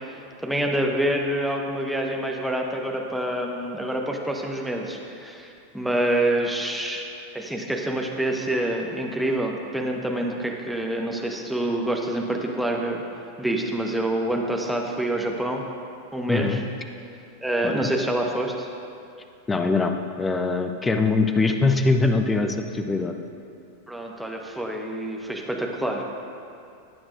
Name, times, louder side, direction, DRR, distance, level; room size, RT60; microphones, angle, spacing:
voice 1, 0.1-13.0 13.4-15.6 16.1-16.6 17.4-18.7 23.9-26.0, right 1 dB, ahead, 0 dB, 1.1 m, -27 dB
voice 2, 16.3-16.6 17.6-17.9 19.5-19.9 20.2-23.1, left 3 dB, 15° left, 6 dB, 0.7 m, -22 dB
18.5 x 8.7 x 2.5 m, 2.5 s
figure-of-eight pair, 90°, 0 cm